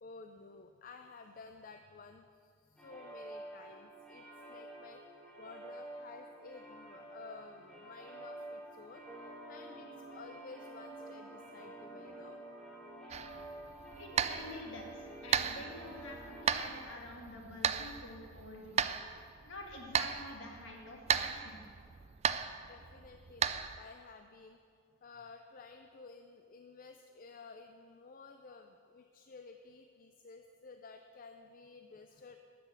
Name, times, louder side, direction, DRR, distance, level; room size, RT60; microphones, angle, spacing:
voice 1, 0.0-12.4 22.6-24.6 25.0-32.4, left 4 dB, 40° left, 6 dB, 0.5 m, -53 dB
sound 1, 2.8-16.4, right 1 dB, 5° left, 1.7 m, -49 dB
sound 2, 13.1-23.8, right 7 dB, 30° right, 0.3 m, -36 dB
voice 2, 14.0-18.8 19.4-21.6, left 1 dB, 60° left, 0 dB, 2.1 m, -47 dB
12.5 x 6.1 x 8.1 m, 2.3 s
head